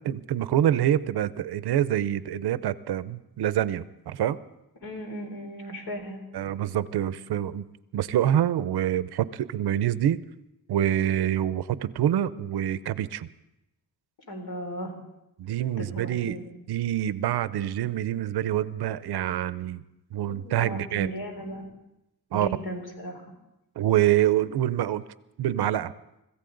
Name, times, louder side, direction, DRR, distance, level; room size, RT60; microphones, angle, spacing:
voice 1, 0.0-4.4 6.3-7.6 7.9-10.2 10.7-13.3 15.4-16.4 16.7-19.8 20.1-21.1 22.3-22.5 23.8-25.0 25.4-25.9, right 11 dB, 90° right, 16 dB, 0.7 m, -26 dB
voice 2, 4.8-6.2 14.3-15.0 15.8-16.4 20.3-21.7 22.3-23.2, equal, 75° left, 3 dB, 3.7 m, -36 dB
25.0 x 15.0 x 3.9 m, 0.91 s
wide cardioid pair, 145°, 38 cm